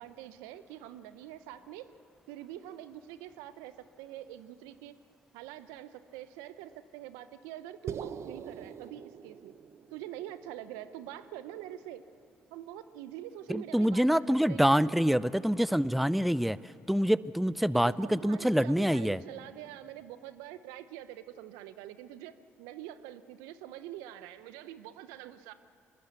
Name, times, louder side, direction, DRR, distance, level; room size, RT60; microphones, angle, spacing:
voice 1, 0.0-1.9 2.3-4.9 5.3-9.5 9.9-12.0 12.5-14.9 17.8-22.3 22.6-25.5, right 12 dB, 80° right, 13 dB, 0.8 m, -45 dB
sound 1, 7.9-12.3, right 8 dB, 55° right, 1.0 m, -44 dB
voice 2, 13.5-16.6 16.9-19.2, equal, ahead, 18 dB, 0.5 m, -26 dB
23.5 x 20.0 x 8.2 m, 2.5 s
hypercardioid pair, 55°, 6 cm